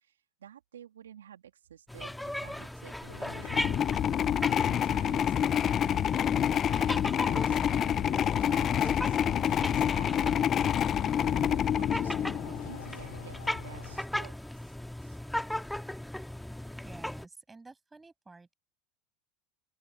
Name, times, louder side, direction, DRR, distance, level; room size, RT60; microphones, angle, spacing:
voice 1, 0.0-3.8 4.6-6.2 6.4-10.7 11.3-14.7 15.0-15.2, right 9 dB, 90° right, 2.9 m, -52 dB
sound 1, 1.9-17.2, left 1 dB, 5° left, 1.7 m, -38 dB
sound 2, 3.1-14.0, left 12 dB, 85° left, 6.2 m, -47 dB
sound 3, 3.4-12.8, left 9 dB, 40° left, 0.5 m, -27 dB
voice 2, 16.8-18.5, right 3 dB, 15° right, 7.3 m, -51 dB
open air
hypercardioid pair, 90°, 0 cm